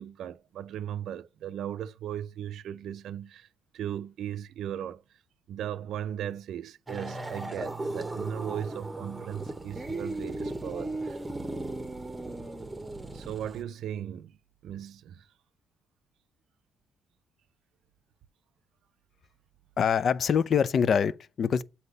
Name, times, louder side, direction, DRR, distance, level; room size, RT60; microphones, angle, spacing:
voice 1, 0.0-3.5 3.7-5.0 5.5-11.2 13.1-14.4 14.6-15.3, right 10 dB, 75° right, 0.4 m, -37 dB
sound 1, 6.9-13.6, right 2 dB, 15° right, 0.8 m, -36 dB
voice 2, 19.8-21.6, left 7 dB, 55° left, 0.4 m, -24 dB
7.9 x 2.8 x 5.3 m
cardioid pair, 90°, 0 cm